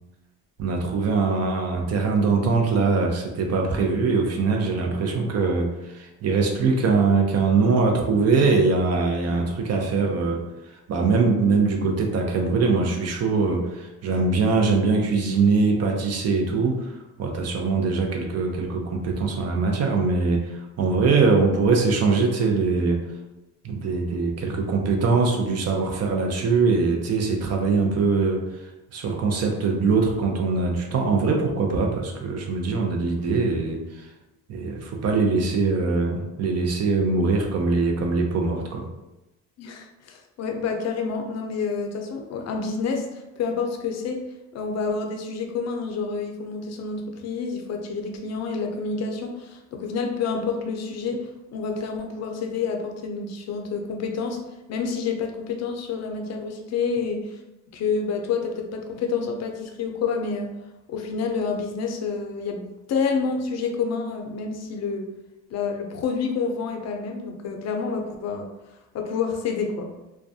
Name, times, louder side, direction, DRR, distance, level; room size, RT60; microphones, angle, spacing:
voice 1, 0.6-10.4 10.9-16.9 17.2-23.0 23.6-28.5 28.9-33.8 34.5-38.9, right 4 dB, 55° right, 2 dB, 0.5 m, -22 dB
voice 2, 39.6-44.2 44.5-54.4 54.7-57.4 57.7-60.5 60.9-65.1 65.5-68.5 68.9-69.9, left 5 dB, 60° left, 3 dB, 0.5 m, -28 dB
2.2 x 2.2 x 2.6 m, 1.0 s
cardioid pair, 90°, 30 cm